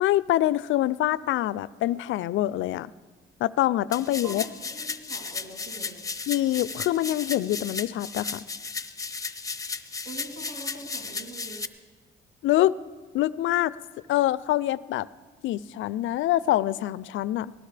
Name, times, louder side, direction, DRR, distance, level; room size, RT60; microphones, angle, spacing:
voice 1, 0.0-2.9 3.4-4.4 6.3-8.4 12.4-12.8 13.1-13.7 14.1-15.1 15.4-17.5, left 14 dB, 75° left, 19 dB, 0.4 m, -25 dB
sound 1, 3.9-11.7, left 4 dB, 15° left, 0.7 m, -35 dB
voice 2, 4.0-6.0 10.0-11.6, right 1 dB, 65° right, -2 dB, 3.1 m, -43 dB
19.0 x 18.5 x 3.3 m, 1.4 s
cardioid pair, 90°, 20 cm